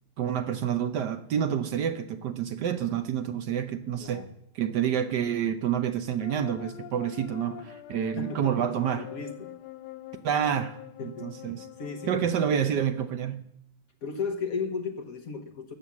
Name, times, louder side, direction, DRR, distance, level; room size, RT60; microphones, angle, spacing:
voice 1, 0.2-4.2 4.5-9.1 10.2-11.7 12.0-13.4, right 9 dB, 65° right, 9 dB, 1.3 m, -28 dB
sound 1, 6.2-12.6, left 13 dB, 70° left, 1.1 m, -44 dB
voice 2, 8.0-9.5 11.0-11.3 11.8-12.6 14.0-15.7, left 5 dB, 50° left, 5 dB, 1.3 m, -35 dB
12.5 x 8.8 x 7.1 m, 0.77 s
omnidirectional pair, 2.2 m